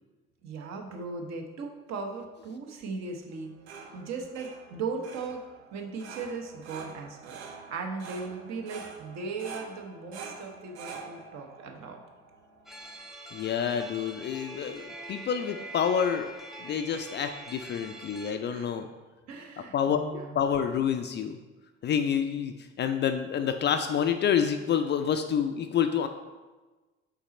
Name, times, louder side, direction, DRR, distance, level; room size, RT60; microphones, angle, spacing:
voice 1, 0.4-3.5 3.9-5.4 5.7-7.4 7.7-12.0 18.4-18.7 19.3-20.4, right 4 dB, 50° right, 3 dB, 1.0 m, -38 dB
sound 1, 3.3-13.0, right 5 dB, 70° right, 0.7 m, -46 dB
sound 2, 12.7-18.3, right 1 dB, ahead, 0.7 m, -44 dB
voice 2, 13.3-16.3 16.6-18.9 19.7-21.4 21.8-26.1, left 8 dB, 30° left, 7 dB, 0.4 m, -28 dB
5.8 x 4.1 x 4.2 m, 1.2 s
figure-of-eight pair, 55°, 35 cm